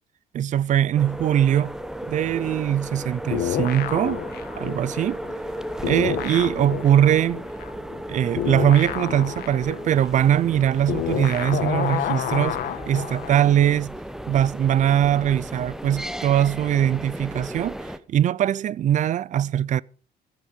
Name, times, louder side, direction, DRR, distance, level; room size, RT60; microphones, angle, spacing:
voice 1, 0.3-1.7 2.1-4.2 4.6-5.2 5.8-7.4 8.1-12.6 12.9-13.9 14.3-19.8, right 10 dB, 45° right, 0.5 m, -21 dB
sound 1, 1.0-18.0, equal, 5° right, 0.9 m, -35 dB
sound 2, 3.3-5.6 5.8-13.4, left 10 dB, 65° left, 1.7 m, -29 dB
14.5 x 10.0 x 5.3 m
cardioid pair, 110°, 17 cm